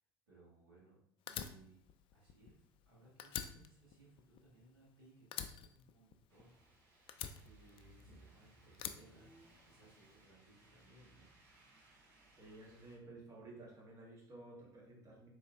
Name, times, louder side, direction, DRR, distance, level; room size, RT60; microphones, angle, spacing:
voice 1, 0.3-1.0 1.3-1.8 2.1-6.9 7.4-9.3 9.6-11.2, right 2 dB, 85° right, -7 dB, 1.4 m, -64 dB
Fire, 1.3-2.9 3.2-4.9 5.3-6.6 7.1-8.2 8.7-9.9, left 9 dB, 45° left, 0.4 m, -46 dB
sound 1, 6.3-13.0, right 1 dB, 70° right, 1.1 m, -65 dB
voice 2, 12.3-15.3, right 2 dB, 30° right, -2 dB, 1.5 m, -54 dB
4.2 x 3.1 x 2.5 m, 0.66 s
hypercardioid pair, 70°, 12 cm